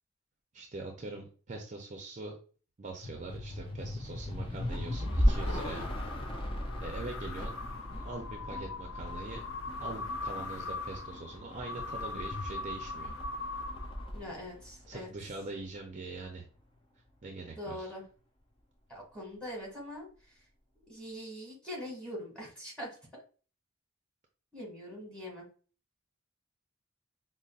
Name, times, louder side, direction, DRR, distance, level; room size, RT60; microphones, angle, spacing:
voice 1, 0.5-2.4 2.8-5.9 6.8-7.6 7.9-9.5 9.8-13.1 14.9-16.4 17.2-17.9, right 3 dB, 40° right, 2 dB, 0.5 m, -43 dB
sound 1, 3.0-15.5, equal, 25° left, 0.5 m, -36 dB
sound 2, 4.7-14.4, left 3 dB, 80° left, 0.5 m, -41 dB
voice 2, 14.1-15.1 17.6-18.0 18.9-20.1 20.9-22.9 24.5-25.5, left 1 dB, 5° left, -3 dB, 1.8 m, -42 dB
5.2 x 2.0 x 2.4 m, 0.39 s
head